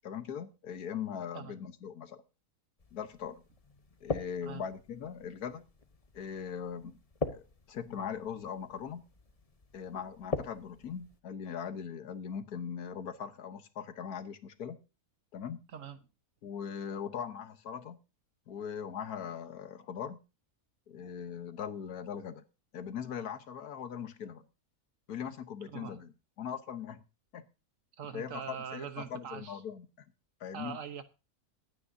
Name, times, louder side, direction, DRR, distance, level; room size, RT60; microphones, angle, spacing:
voice 1, 0.0-2.2 2.9-3.4 4.0-5.7 6.1-7.0 7.3-9.0 9.7-14.8 15.3-15.6 16.4-18.0 18.5-20.2 20.9-22.4 22.7-24.5 25.1-26.1 26.4-27.0 27.3-27.4 28.1-30.1 30.4-30.8, left 7 dB, 75° left, 11 dB, 1.6 m, -40 dB
sound 1, 2.8-11.2, left 3 dB, 25° left, 1.0 m, -42 dB
voice 2, 25.7-26.0 28.0-29.6 30.5-31.0, right 8 dB, 60° right, 11 dB, 1.4 m, -42 dB
22.5 x 9.2 x 2.7 m, 0.30 s
omnidirectional pair, 1.6 m